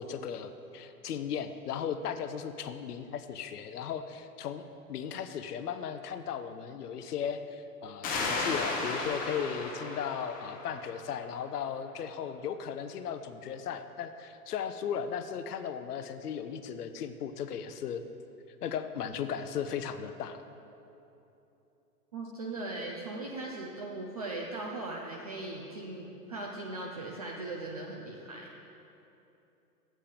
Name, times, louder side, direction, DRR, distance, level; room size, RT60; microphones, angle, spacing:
voice 1, 0.0-18.0 18.6-20.4, left 7 dB, 70° left, 10 dB, 0.7 m, -36 dB
sound 1, 8.0-11.4, left 3 dB, 15° left, 0.9 m, -35 dB
voice 2, 22.1-28.5, right 2 dB, 25° right, -1 dB, 0.4 m, -39 dB
7.4 x 5.1 x 7.1 m, 2.9 s
hypercardioid pair, 125°, 48 cm